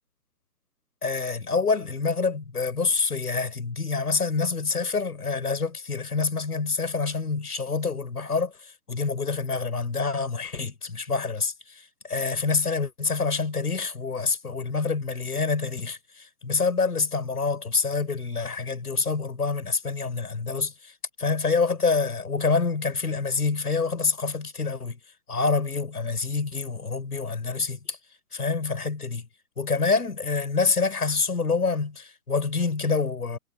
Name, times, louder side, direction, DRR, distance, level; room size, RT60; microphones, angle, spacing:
voice 1, 1.0-20.9 21.2-25.0 25.3-28.0 28.3-29.3 29.6-33.4, left 4 dB, 70° left, 6.4 m, -27 dB
figure-of-eight pair, 135°, 47 cm